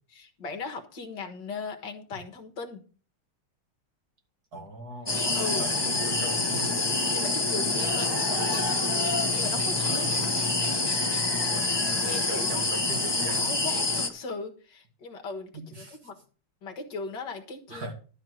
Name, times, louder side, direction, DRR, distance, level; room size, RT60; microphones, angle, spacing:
voice 1, 0.1-2.8 5.3-5.6 7.1-8.6 9.3-10.1 12.0-12.7 13.3-16.2 16.6-17.9, left 4 dB, 55° left, 4 dB, 2.0 m, -38 dB
voice 2, 4.5-6.8 9.9-10.3 11.5-13.5 15.5-16.0 17.7-17.9, right 2 dB, 45° right, 2 dB, 2.9 m, -40 dB
sound 1, 5.1-14.1, left 2 dB, 20° left, 0.7 m, -26 dB
12.0 x 4.4 x 7.8 m, 0.38 s
omnidirectional pair, 2.4 m